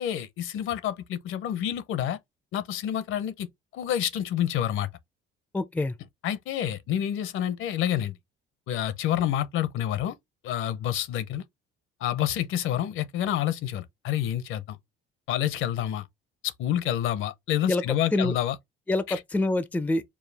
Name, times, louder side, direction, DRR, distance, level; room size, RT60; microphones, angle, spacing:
voice 1, 0.0-2.2 2.5-3.5 3.7-4.9 6.2-8.2 8.7-10.2 10.4-11.4 12.0-14.8 15.3-16.1 16.4-18.5 19.1-19.2, left 11 dB, 70° left, 0.7 m, -28 dB
voice 2, 5.5-6.0 17.6-17.8 18.1-18.4 18.9-20.0, left 2 dB, 5° left, 0.5 m, -26 dB
4.7 x 2.3 x 3.4 m
cardioid pair, 115°, 21 cm